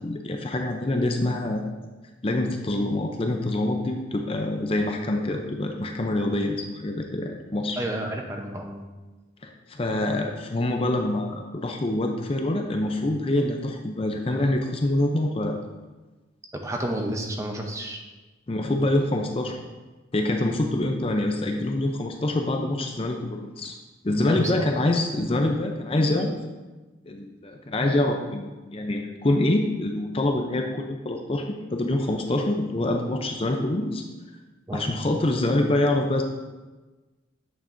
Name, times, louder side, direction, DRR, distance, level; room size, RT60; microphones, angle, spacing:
voice 1, 0.0-1.6 2.2-7.8 9.4-15.6 18.5-19.6 20.1-23.7 24.0-26.4 27.1-34.0 34.7-36.2, left 1 dB, 30° left, 3 dB, 0.5 m, -25 dB
voice 2, 7.8-8.9 16.5-18.0 24.2-24.7 34.7-34.9, right 1 dB, 15° right, 2 dB, 0.6 m, -30 dB
8.4 x 7.1 x 2.6 m, 1.2 s
head